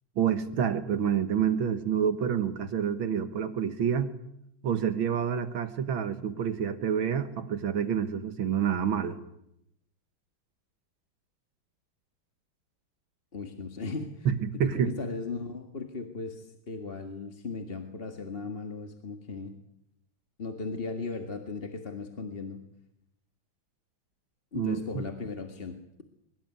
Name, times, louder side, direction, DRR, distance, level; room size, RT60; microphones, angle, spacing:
voice 1, 0.2-4.1 4.6-9.2 14.3-14.9 24.5-24.8, right 8 dB, 70° right, 11 dB, 2.1 m, -28 dB
voice 2, 13.3-14.3 14.6-19.5 20.4-22.6 24.5-26.0, left 4 dB, 30° left, 6 dB, 1.9 m, -37 dB
23.5 x 22.0 x 9.6 m, 0.81 s
omnidirectional pair, 2.3 m